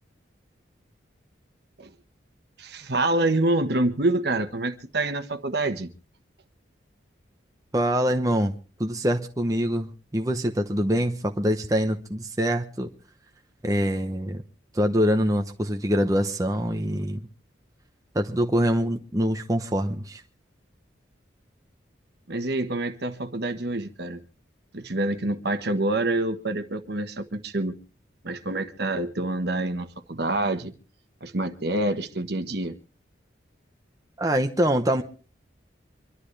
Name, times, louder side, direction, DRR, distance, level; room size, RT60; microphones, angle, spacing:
voice 1, 2.6-5.9 22.3-24.2 24.7-27.7 28.2-30.7 31.2-32.7, right 2 dB, 60° right, 1.3 m, -27 dB
voice 2, 7.7-8.5 8.8-12.9 13.6-14.4 14.7-17.2 18.1-20.2 34.2-35.0, equal, 20° right, 0.8 m, -24 dB
26.0 x 12.0 x 3.3 m
head